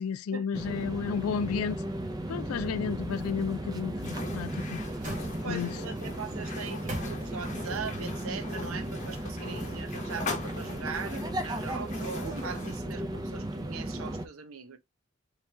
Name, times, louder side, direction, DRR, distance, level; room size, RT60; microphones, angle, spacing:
voice 1, 0.0-1.8 2.3-4.8 5.5-5.8, left 6 dB, 85° left, 0.3 m, -32 dB
sound 1, 0.5-14.3, right 1 dB, 20° right, 0.5 m, -35 dB
sound 2, 4.0-12.8, left 4 dB, 35° left, 0.9 m, -42 dB
sound 3, 4.5-5.9 6.4-7.7 8.1-8.2, right 1 dB, 40° right, 1.3 m, -42 dB
voice 2, 5.4-14.8, right 5 dB, 80° right, 0.7 m, -40 dB
3.2 x 2.8 x 3.4 m
head